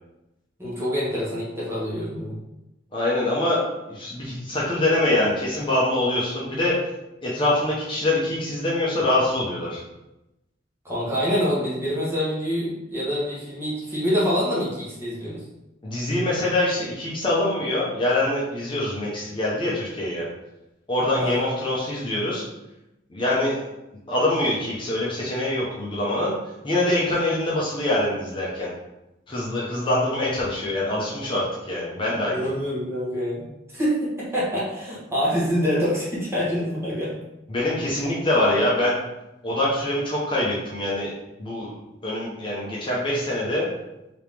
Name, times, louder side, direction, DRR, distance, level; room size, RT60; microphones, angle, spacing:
voice 1, 0.6-2.3 10.8-15.4 21.2-21.5 32.3-37.2, equal, 15° right, -8 dB, 1.3 m, -26 dB
voice 2, 2.9-3.6 3.9-6.8 7.2-9.8 15.8-20.3 20.9-22.5 23.1-23.6 24.1-26.3 26.6-28.7 29.3-32.5 37.5-39.0 39.4-41.1 41.4-41.7 42.0-43.7, left 1 dB, 30° left, -6 dB, 0.8 m, -24 dB
3.3 x 2.9 x 3.4 m, 0.93 s
head